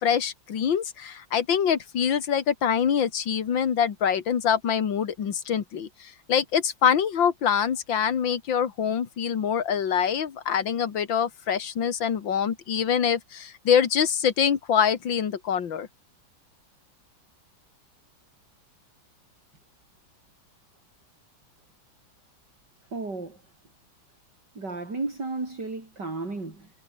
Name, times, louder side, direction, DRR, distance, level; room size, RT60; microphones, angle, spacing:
voice 1, 0.0-15.9, left 8 dB, 70° left, 2.5 m, -25 dB
voice 2, 22.9-23.4 24.6-26.7, right 3 dB, 55° right, 5.8 m, -33 dB
omnidirectional pair, 2.2 m